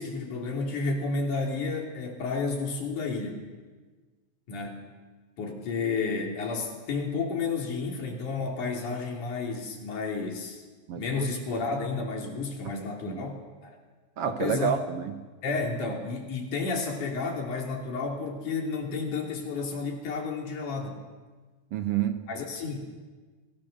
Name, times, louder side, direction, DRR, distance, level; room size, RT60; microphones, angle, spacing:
voice 1, 0.0-3.5 4.5-4.9 5.4-10.6 11.0-13.8 14.3-14.7 15.4-21.0 22.3-23.0, left 4 dB, 75° left, 1 dB, 4.5 m, -31 dB
voice 2, 10.9-11.3 13.1-13.3 14.2-15.2 21.7-22.2, right 9 dB, 65° right, 8 dB, 1.7 m, -29 dB
27.5 x 18.0 x 6.6 m, 1.4 s
omnidirectional pair, 3.6 m